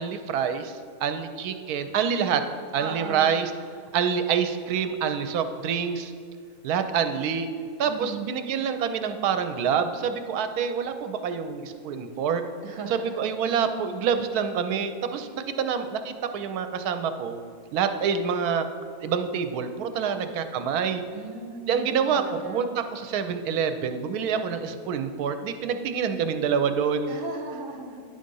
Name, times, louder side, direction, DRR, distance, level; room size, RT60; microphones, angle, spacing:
voice 1, 0.0-2.4 2.7-3.5 3.9-6.1 6.6-7.5 7.8-12.4 12.9-15.3 15.6-17.4 17.7-18.7 19.0-21.0 21.7-27.1, right 7 dB, 80° right, 8 dB, 1.1 m, -27 dB
voice 2, 2.8-3.3 7.8-8.4 12.6-13.3 20.0-20.3 21.1-22.6 27.1-28.0, right 4 dB, 65° right, 3 dB, 1.3 m, -37 dB
10.0 x 3.8 x 5.3 m, 2.1 s
omnidirectional pair, 1.6 m